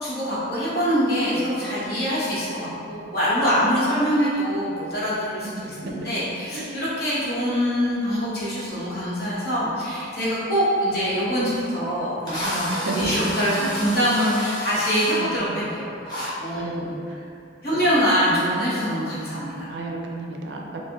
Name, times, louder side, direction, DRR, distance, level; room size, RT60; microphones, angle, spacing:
voice 1, 0.0-16.9 17.6-19.7, equal, 55° left, -9 dB, 1.0 m, -24 dB
voice 2, 2.6-2.9 5.4-6.1 6.5-6.7 12.7-13.0 13.6-13.7 15.2-15.6 16.5-17.2 17.7-17.8 19.7-20.8, right 3 dB, 65° right, 1 dB, 0.4 m, -34 dB
Drill, 11.6-11.7 12.3-15.2 16.1-16.3, equal, 20° left, 0.8 m, -31 dB
4.7 x 2.0 x 2.8 m, 2.5 s
head